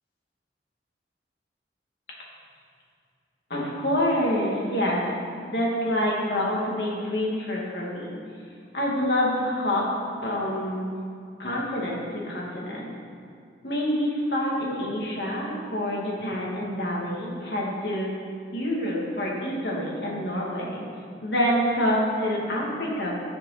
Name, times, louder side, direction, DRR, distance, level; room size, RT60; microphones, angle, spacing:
voice 1, 3.5-5.0 5.5-8.2 8.7-9.9 10.2-10.9 11.4-12.9 13.6-18.1 18.5-20.8 21.2-23.2, equal, 70° left, -4 dB, 2.7 m, -27 dB
15.0 x 7.1 x 4.2 m, 2.3 s
head